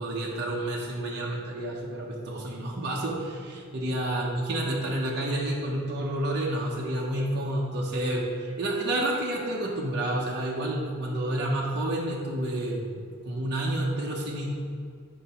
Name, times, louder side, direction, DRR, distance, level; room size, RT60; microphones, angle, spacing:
voice 1, 0.0-12.9 13.2-14.5, right 1 dB, 50° right, -3 dB, 1.0 m, -29 dB
7.5 x 5.0 x 4.3 m, 2.1 s
head